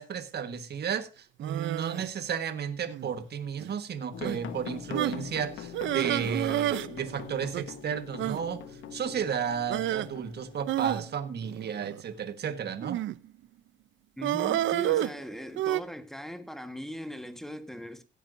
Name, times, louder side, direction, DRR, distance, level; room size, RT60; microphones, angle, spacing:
voice 1, 0.0-8.6 8.9-13.0, right 7 dB, 55° right, 1.5 m, -33 dB
sound 1, 1.4-2.1 2.9-3.2 3.6-3.7 4.2-4.4 4.9-5.2 5.7-6.9 7.1-7.2 7.5-7.7 8.2-8.4 9.7-10.1 10.7-12.0 12.8-13.3 14.2-15.8, right 13 dB, 75° right, 0.5 m, -30 dB
sound 2, 4.1-10.9, left 8 dB, 80° left, 1.3 m, -42 dB
voice 2, 14.2-18.0, equal, ahead, 1.4 m, -39 dB
16.5 x 8.9 x 2.6 m
cardioid pair, 90°, 20 cm